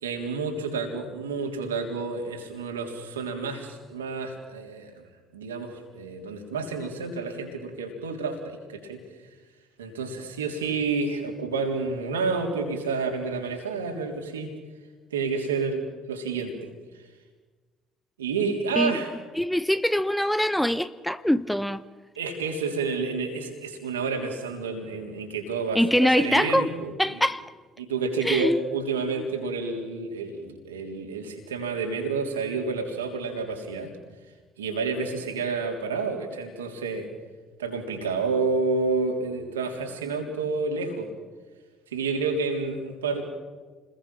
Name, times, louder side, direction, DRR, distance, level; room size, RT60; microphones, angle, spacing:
voice 1, 0.0-4.9 5.3-9.0 9.8-14.5 15.1-16.7 18.2-19.1 22.1-27.2 27.8-33.9 34.6-37.1 37.6-41.1 41.9-43.2, right 4 dB, 75° right, 3.4 m, -29 dB
voice 2, 19.4-21.8 25.7-26.7 27.0-27.4 28.2-28.6, equal, 5° left, 0.9 m, -23 dB
29.5 x 21.0 x 5.9 m
figure-of-eight pair, 50°, 0 cm